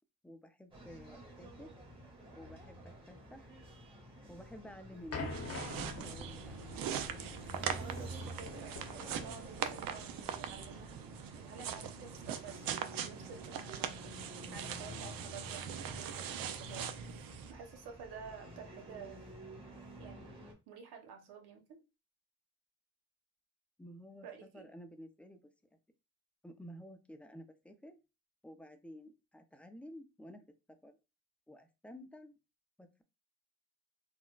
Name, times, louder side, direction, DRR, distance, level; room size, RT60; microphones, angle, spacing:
voice 1, 0.2-1.7 2.4-3.5 4.2-5.3 5.6-6.6 23.8-25.5 26.4-28.0 28.4-31.0 31.5-32.3 32.8-33.0, equal, 5° left, 0.4 m, -52 dB
sound 1, 0.7-20.5, right 1 dB, 15° right, 1.3 m, -50 dB
sound 2, 5.1-10.5, left 3 dB, 40° left, 0.9 m, -46 dB
sound 3, 5.1-17.5, right 9 dB, 60° right, 0.5 m, -42 dB
voice 2, 7.5-11.0 11.3-12.7 13.0-14.2 14.5-16.9 17.5-19.3 20.0-21.8 24.2-24.7, right 6 dB, 85° right, 1.0 m, -51 dB
4.1 x 2.1 x 2.3 m
cardioid pair, 90°, 38 cm